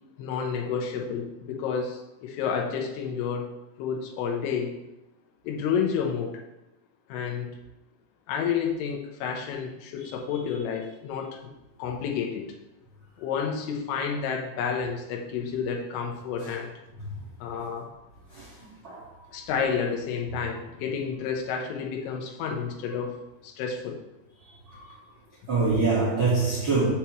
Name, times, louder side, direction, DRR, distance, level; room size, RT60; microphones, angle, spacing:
voice 1, 0.2-3.5 3.8-4.7 5.4-6.3 7.1-7.5 8.3-11.5 11.8-12.5 13.2-16.7 17.4-17.9 19.3-23.2 23.4-24.0, left 6 dB, 75° left, 1 dB, 2.7 m, -30 dB
voice 2, 18.3-19.2 24.7-25.0 25.5-26.9, right 3 dB, 80° right, -9 dB, 1.1 m, -25 dB
7.0 x 6.2 x 3.0 m, 0.93 s
omnidirectional pair, 5.2 m